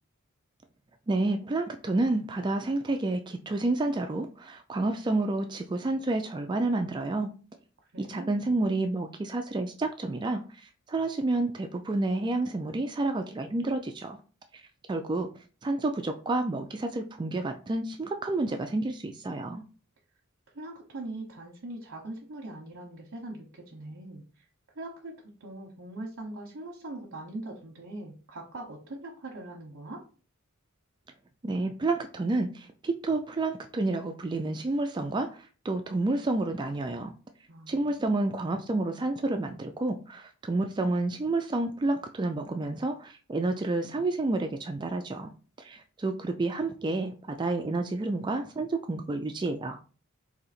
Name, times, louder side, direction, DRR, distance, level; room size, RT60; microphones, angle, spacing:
voice 1, 1.1-7.3 8.0-14.2 14.9-15.3 15.6-19.6 31.4-37.1 37.7-45.3 45.6-49.8, right 2 dB, 20° right, 0.3 m, -29 dB
voice 2, 7.9-8.5 20.5-24.2 24.7-25.1 25.4-30.0 37.5-38.0, right 2 dB, 60° right, 0.9 m, -41 dB
3.9 x 2.7 x 4.2 m
head